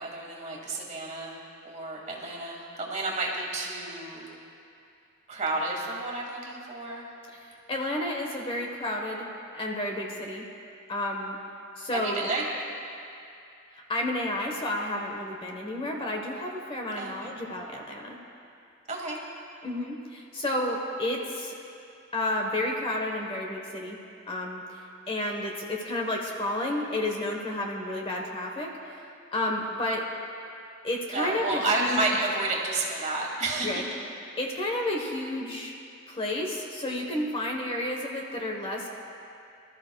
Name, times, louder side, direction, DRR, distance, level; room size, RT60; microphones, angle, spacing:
voice 1, 0.0-1.4 1.6-4.3 5.3-7.1 11.9-12.4 17.0-17.3 18.9-19.2 31.1-33.8, right 2 dB, 35° right, -2 dB, 2.0 m, -31 dB
voice 2, 7.4-9.3 9.5-10.4 10.9-11.4 11.8-12.3 13.7-18.2 19.6-21.6 22.1-24.0 24.3-29.0 29.3-30.0 30.8-32.0 33.6-33.8 34.4-35.7 36.1-38.9, left 1 dB, 25° left, 1 dB, 1.1 m, -31 dB
25.0 x 13.0 x 2.3 m, 2.6 s
head